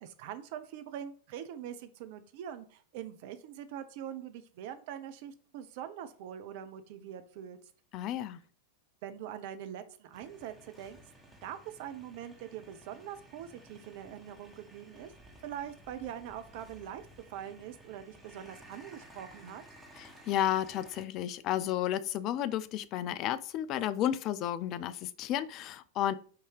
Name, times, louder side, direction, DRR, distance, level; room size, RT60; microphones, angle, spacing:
voice 1, 0.0-7.6 9.0-11.0 11.4-15.1 15.4-17.0 17.3-19.6, right 10 dB, 50° right, 0.5 m, -43 dB
voice 2, 7.9-8.4 20.0-26.2, left 11 dB, 35° left, 0.3 m, -32 dB
sound 1, 10.1-21.0, right 1 dB, 5° right, 1.1 m, -55 dB
3.7 x 2.7 x 4.6 m
figure-of-eight pair, 90°, 0 cm